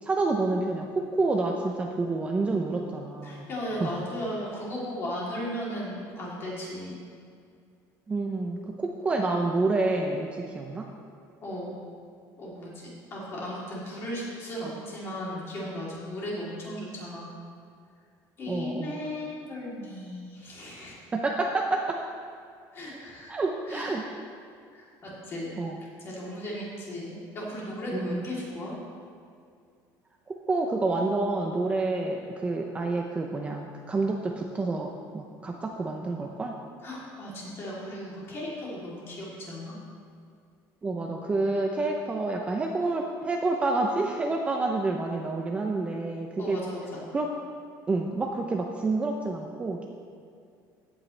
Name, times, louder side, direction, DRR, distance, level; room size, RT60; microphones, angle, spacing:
voice 1, 0.0-3.5 3.8-3.9 8.1-10.9 18.5-19.0 21.1-22.0 23.3-24.0 25.6-25.8 27.9-28.3 30.3-36.6 40.8-46.6 47.1-47.3 47.9-49.9, right 3 dB, 15° right, 1 dB, 0.6 m, -28 dB
voice 2, 3.2-7.0 11.4-11.8 12.4-17.3 18.4-20.9 22.7-23.3 23.7-24.0 24.7-25.5 26.0-28.7 36.8-39.8 46.4-46.8, left 1 dB, 30° left, -6 dB, 3.1 m, -36 dB
15.5 x 8.8 x 3.3 m, 2.3 s
cardioid pair, 170°, 8 cm